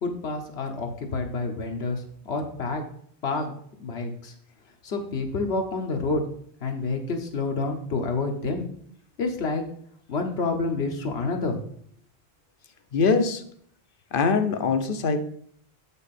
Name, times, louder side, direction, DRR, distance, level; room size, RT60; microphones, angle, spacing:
voice 1, 0.0-2.8 3.2-3.5 3.8-4.3 4.8-6.2 6.6-8.7 9.2-9.6 10.1-11.6, left 3 dB, 75° left, 3 dB, 1.2 m, -28 dB
voice 2, 12.9-13.4 14.1-15.2, left 4 dB, 60° left, 9 dB, 0.9 m, -22 dB
7.1 x 5.5 x 4.2 m, 0.63 s
omnidirectional pair, 1.1 m